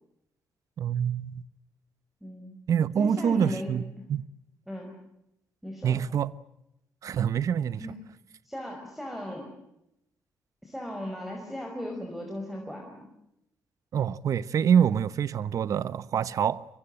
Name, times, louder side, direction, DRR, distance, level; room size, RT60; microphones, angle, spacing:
voice 1, 0.8-1.4 2.7-3.8 4.1-4.2 5.8-6.3 7.0-7.8 13.9-16.6, right 8 dB, 65° right, 1.0 m, -26 dB
voice 2, 2.2-2.6 2.9-4.1 4.7-4.9 5.6-6.0 7.8-8.0 8.4-9.5 10.6-13.1, left 1 dB, 5° right, 5.1 m, -37 dB
25.0 x 24.5 x 7.7 m
cardioid pair, 100°, 6 cm